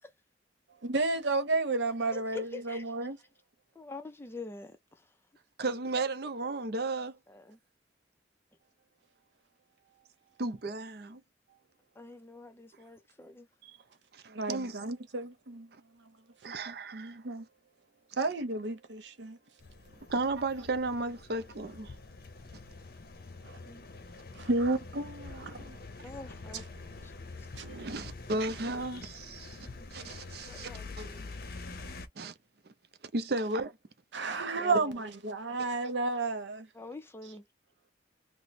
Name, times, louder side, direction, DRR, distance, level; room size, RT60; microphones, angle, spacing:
voice 1, 0.8-3.2 14.3-15.7 16.5-17.4 18.2-19.4 23.4-23.6 24.3-25.8 27.6-27.7 34.1-36.7, right 3 dB, 75° right, 0.9 m, -32 dB
voice 2, 2.1-2.8 3.8-5.1 7.3-7.6 12.0-13.5 23.7-23.8 26.0-26.7 27.0-27.1 29.8-29.9 30.5-31.3 34.6-34.9 35.2-35.4 36.7-37.4, left 2 dB, 15° left, 0.4 m, -46 dB
voice 3, 5.6-7.2 10.4-11.2 13.6-13.7 14.1-14.8 16.4-17.2 20.1-21.9 25.4-25.6 27.6-29.6 29.9-30.7 31.0-31.2 32.2-32.3 33.1-33.7 34.2-34.4, right 2 dB, 55° right, 0.5 m, -34 dB
sound 1, 19.6-32.1, left 3 dB, 50° left, 0.7 m, -46 dB
3.0 x 2.0 x 4.0 m
head